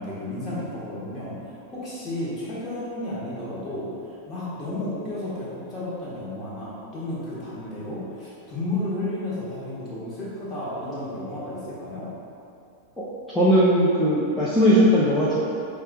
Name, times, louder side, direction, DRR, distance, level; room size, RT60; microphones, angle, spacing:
voice 1, 0.0-12.1, left 1 dB, 25° left, -8 dB, 1.3 m, -32 dB
voice 2, 13.3-15.4, equal, 5° left, -10 dB, 0.7 m, -18 dB
5.4 x 2.4 x 3.6 m, 2.6 s
figure-of-eight pair, 90°, 0 cm